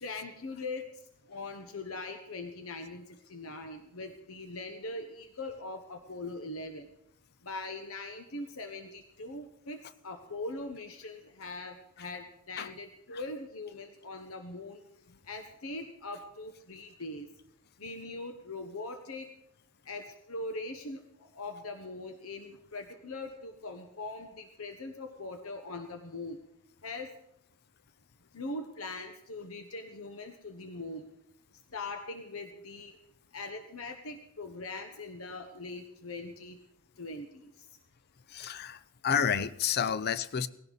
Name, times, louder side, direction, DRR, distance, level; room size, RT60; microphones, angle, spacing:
voice 1, 0.0-0.8 1.3-6.9 7.4-14.8 15.3-17.3 17.8-19.3 19.8-26.4 26.8-27.1 28.3-31.1 31.7-33.0 33.3-36.6 37.0-37.7, left 2 dB, 90° left, 1.2 m, -41 dB
voice 2, 38.3-40.5, left 7 dB, 50° left, 0.5 m, -30 dB
19.0 x 16.0 x 4.1 m
head